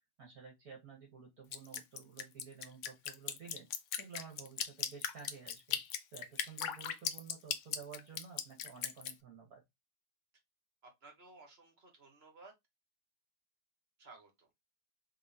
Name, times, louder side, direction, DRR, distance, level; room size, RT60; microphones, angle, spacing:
voice 1, 0.2-3.7 4.0-5.8 6.1-9.6, right 6 dB, 55° right, 1.5 m, -52 dB
Drip, 1.5-9.1, left 9 dB, 90° left, 0.6 m, -38 dB
voice 2, 10.8-12.5 14.0-14.5, right 3 dB, 40° right, 1.4 m, -57 dB
3.9 x 3.6 x 2.7 m
omnidirectional pair, 1.9 m